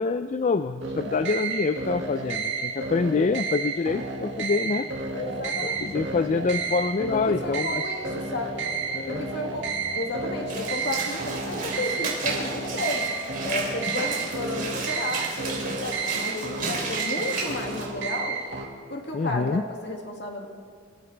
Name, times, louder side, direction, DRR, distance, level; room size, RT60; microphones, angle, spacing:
voice 1, 0.0-4.9 5.8-7.8 8.9-9.2 19.1-19.6, left 4 dB, 40° left, 10 dB, 0.4 m, -26 dB
sound 1, 0.8-18.7, right 4 dB, 70° right, 1.9 m, -31 dB
sound 2, 4.3-14.9, equal, 15° left, 4.8 m, -44 dB
voice 2, 5.1-5.9 7.1-8.5 9.1-9.7 9.9-13.1 13.4-18.4 18.9-20.5, left 2 dB, 60° left, 1 dB, 2.1 m, -33 dB
Walk footsteps / Splash splatter, 10.5-17.9, right 4 dB, 45° right, 3.6 m, -33 dB
27.0 x 13.5 x 3.4 m, 2.1 s
head